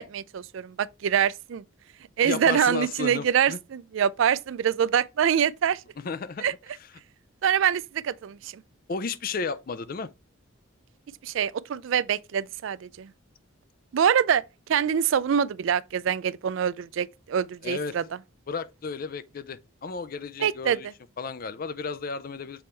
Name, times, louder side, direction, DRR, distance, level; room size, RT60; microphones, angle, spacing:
voice 1, 0.0-1.6 2.2-5.8 6.4-6.5 7.4-8.6 11.2-13.1 13.9-14.4 14.7-18.0 20.4-20.9, right 8 dB, 65° right, 0.3 m, -25 dB
voice 2, 2.2-3.6 6.0-6.5 6.8-6.9 8.9-10.1 17.6-18.0 18.5-20.9 21.2-22.6, left 4 dB, 45° left, 0.4 m, -33 dB
6.9 x 4.3 x 3.3 m
head